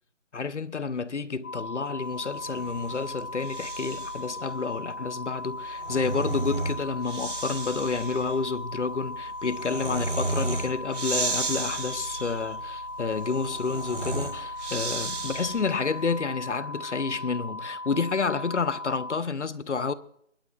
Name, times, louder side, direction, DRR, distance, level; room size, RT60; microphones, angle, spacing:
voice 1, 0.3-19.9, left 4 dB, 65° left, 0.8 m, -30 dB
sound 1, 1.4-19.2, left 2 dB, 85° left, 1.1 m, -38 dB
Breathing, 2.3-4.3 5.5-15.8, right 2 dB, 70° right, 3.8 m, -34 dB
19.5 x 11.5 x 3.4 m
figure-of-eight pair, 155°, 37 cm